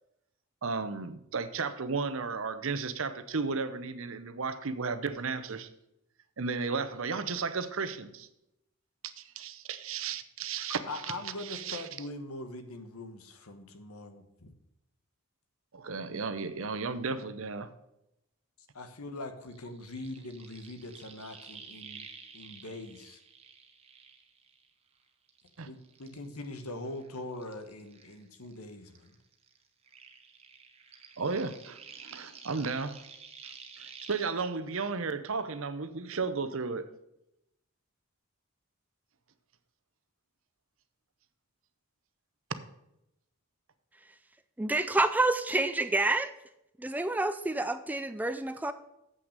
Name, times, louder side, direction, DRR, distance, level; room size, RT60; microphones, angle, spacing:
voice 1, 0.6-5.7 6.4-8.3 9.0-10.8 11.4-11.8 15.7-17.7 25.6-25.7 31.2-33.0 33.4-36.9, right 4 dB, 65° right, 11 dB, 0.8 m, -34 dB
voice 2, 10.9-14.5 18.7-22.1 22.3-23.2 25.6-29.2, left 2 dB, 85° left, 8 dB, 1.3 m, -42 dB
sound 1, 19.4-24.9 25.3-28.6 28.9-34.3, right 5 dB, 25° right, 1.0 m, -51 dB
voice 3, 44.6-46.3 46.8-48.7, right 2 dB, 5° right, 11 dB, 0.4 m, -28 dB
7.8 x 6.1 x 6.6 m, 0.85 s
head